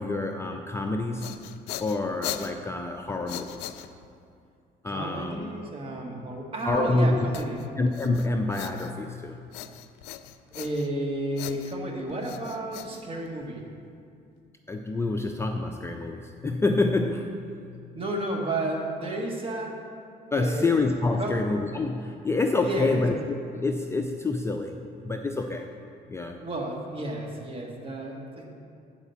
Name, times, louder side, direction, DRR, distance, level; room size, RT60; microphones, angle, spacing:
voice 1, 0.0-1.4 1.8-3.7 4.8-5.5 6.6-7.3 7.8-9.4 14.7-17.5 20.3-25.7 26.1-26.4, left 2 dB, 15° left, 4 dB, 0.4 m, -27 dB
sound 1, 0.9-4.3 7.3-9.2 9.5-11.0 11.3-13.6, left 12 dB, 90° left, 0.4 m, -40 dB
voice 2, 4.9-7.6 10.5-13.7 17.9-19.8 20.3-20.7 21.2-21.4 22.6-23.0 26.4-28.5, right 1 dB, 30° right, 0 dB, 1.5 m, -32 dB
9.2 x 4.9 x 6.9 m, 2.4 s
cardioid pair, 110°, 17 cm